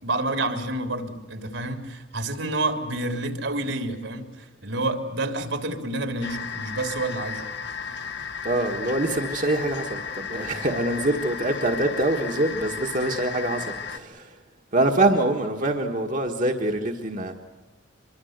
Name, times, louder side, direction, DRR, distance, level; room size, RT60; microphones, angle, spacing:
voice 1, 0.0-7.4, right 2 dB, 75° right, 7 dB, 3.3 m, -29 dB
sound 1, 6.2-14.0, left 6 dB, 60° left, 1.4 m, -34 dB
voice 2, 8.4-14.4 14.7-17.4, right 2 dB, 40° right, 2 dB, 1.6 m, -25 dB
25.5 x 23.5 x 8.1 m, 1.2 s
head